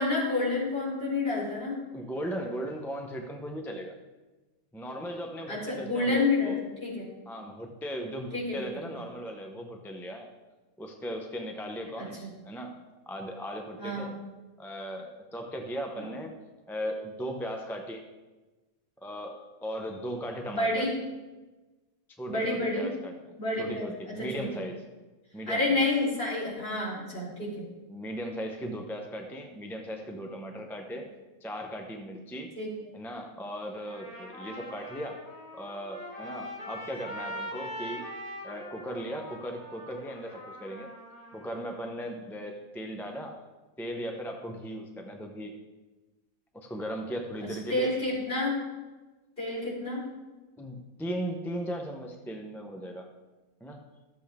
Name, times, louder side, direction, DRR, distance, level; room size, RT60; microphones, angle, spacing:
voice 1, 0.0-1.8 5.5-6.5 6.8-7.1 8.3-8.6 12.0-12.3 13.8-14.1 16.0-16.1 20.5-20.9 22.3-22.9 23.4-23.9 24.4-24.5 25.5-27.7 32.6-32.7 47.7-48.6 49.4-50.0, left 2 dB, 40° left, -7 dB, 4.4 m, -29 dB
voice 2, 1.9-4.0 4.7-6.6 7.3-10.3 10.8-12.8 13.1-14.1 14.6-16.4 16.7-18.1 19.0-20.9 22.2-24.8 25.3-25.8 27.9-31.1 31.4-32.6 32.9-35.2 35.5-38.1 38.4-40.9 41.3-43.4 43.8-45.6 46.5-48.0 50.6-53.1 53.6-53.9, equal, 5° left, 3 dB, 0.5 m, -37 dB
Trumpet, 33.7-41.8, equal, 80° left, 3.0 m, -42 dB
13.5 x 7.7 x 3.6 m, 1.2 s
omnidirectional pair, 1.5 m